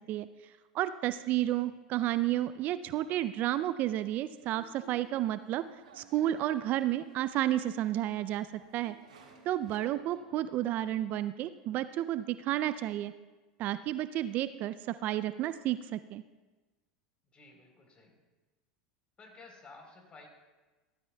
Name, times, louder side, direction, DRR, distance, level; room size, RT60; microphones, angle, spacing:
voice 1, 0.7-5.6 6.0-8.5 8.7-9.0 9.5-13.1 13.6-16.2, right 13 dB, 45° right, 14 dB, 0.4 m, -31 dB
sound 1, 3.5-9.8, right 4 dB, 80° right, 1.9 m, -57 dB
voice 2, 17.3-18.2 19.2-20.3, left 3 dB, 30° left, 2 dB, 3.8 m, -54 dB
15.5 x 13.5 x 2.3 m, 1.2 s
hypercardioid pair, 90°, 4 cm